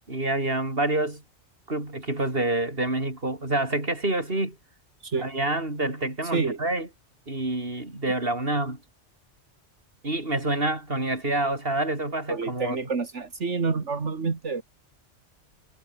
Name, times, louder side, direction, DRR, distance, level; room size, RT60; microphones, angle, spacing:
voice 1, 0.1-1.2 1.7-4.6 5.2-6.9 7.3-8.8 10.0-12.8, right 2 dB, 50° right, 5.2 m, -27 dB
voice 2, 12.3-14.6, right 4 dB, 75° right, 2.5 m, -28 dB
omnidirectional pair, 1.2 m